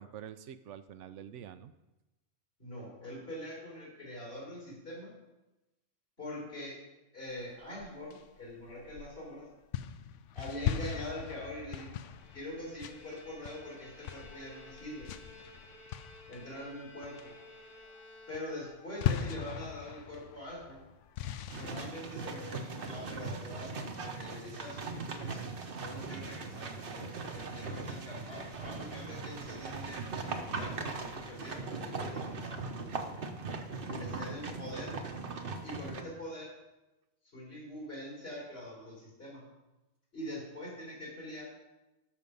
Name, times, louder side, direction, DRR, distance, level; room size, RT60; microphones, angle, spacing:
voice 1, 0.0-1.7 33.4-34.0, right 9 dB, 80° right, 11 dB, 0.9 m, -48 dB
voice 2, 2.6-5.1 6.2-6.8 7.1-9.4 10.3-11.9 12.3-15.1 16.3-17.3 18.3-20.8 21.6-25.4 25.8-32.5 33.8-34.9 35.6-36.5 37.3-39.5 40.1-41.5, left 1 dB, 55° left, -5 dB, 5.0 m, -44 dB
sound 1, 7.6-9.3 9.7-16.7 17.0-17.5 17.8-18.0 18.3-21.9, left 10 dB, 90° left, 0.9 m, -39 dB
Bowed string instrument, 11.9-18.9, left 1 dB, 25° left, 1.4 m, -54 dB
sound 2, 21.5-36.0, right 4 dB, 55° right, 1.0 m, -40 dB
13.0 x 6.2 x 5.4 m, 1.0 s
omnidirectional pair, 1.2 m